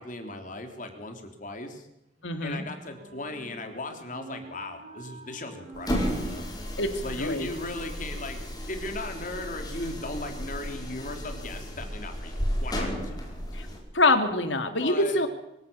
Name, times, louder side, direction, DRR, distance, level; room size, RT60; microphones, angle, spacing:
voice 1, 0.0-1.9 2.4-6.5 7.0-8.4 8.7-13.1 14.8-15.2, left 2 dB, 45° left, 5 dB, 3.5 m, -37 dB
Wind instrument woodwind instrument, 2.1-8.3, right 2 dB, 45° right, 6.8 m, -49 dB
voice 2, 2.2-2.6 6.8-6.9 7.2-7.5 13.5-13.7 13.9-15.3, left 2 dB, 85° left, 7 dB, 3.0 m, -24 dB
sound 1, 5.7-13.8, equal, 20° left, 5.5 m, -33 dB
25.0 x 17.0 x 7.1 m, 0.88 s
head